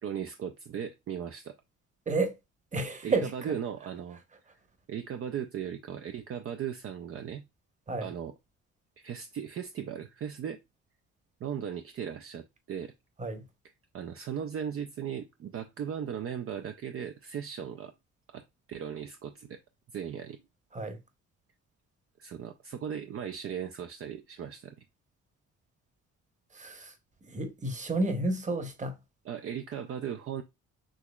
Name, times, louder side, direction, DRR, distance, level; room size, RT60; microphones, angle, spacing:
voice 1, 0.0-1.5 3.0-4.2 4.9-7.4 8.0-8.3 9.0-10.6 11.4-12.9 13.9-17.9 18.3-19.6 19.9-20.4 22.2-24.8 29.2-30.4, right 8 dB, 50° right, 0.5 m, -37 dB
voice 2, 2.7-3.5 7.9-8.1 13.2-13.4 20.7-21.0 26.5-26.9 27.2-29.0, right 2 dB, 25° right, 1.0 m, -31 dB
6.3 x 3.0 x 2.3 m
cardioid pair, 90°, 30 cm